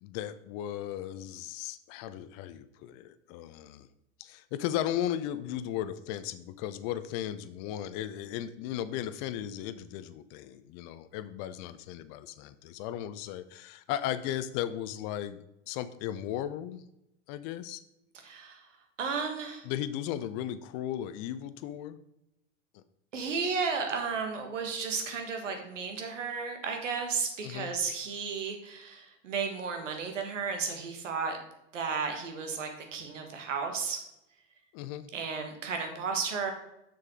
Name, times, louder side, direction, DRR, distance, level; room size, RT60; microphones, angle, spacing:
voice 1, 0.0-3.9 4.2-16.8 17.3-17.8 19.6-22.0 22.7-22.8 27.4-27.8 34.7-35.1, left 11 dB, 40° left, 13 dB, 0.6 m, -36 dB
voice 2, 18.2-18.6 19.0-19.6 23.1-31.4 31.7-34.0 35.1-36.5, right 5 dB, 70° right, 4 dB, 1.6 m, -33 dB
7.0 x 6.4 x 3.7 m, 0.86 s
figure-of-eight pair, 90°, 38 cm